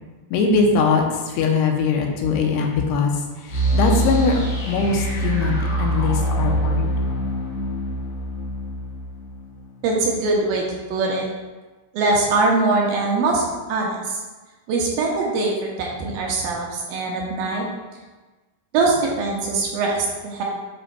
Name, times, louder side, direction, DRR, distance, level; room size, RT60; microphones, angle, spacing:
voice 1, 0.3-1.0 1.3-3.1 3.5-4.4 4.7-6.9, left 4 dB, 85° left, 1 dB, 2.8 m, -21 dB
sound 1, 3.5-10.3, right 1 dB, 50° left, 2.1 m, -24 dB
voice 2, 9.8-11.3 11.9-14.2 14.7-17.7 18.7-20.4, right 3 dB, 75° right, -2 dB, 2.4 m, -22 dB
8.6 x 5.0 x 2.2 m, 1.2 s
omnidirectional pair, 4.6 m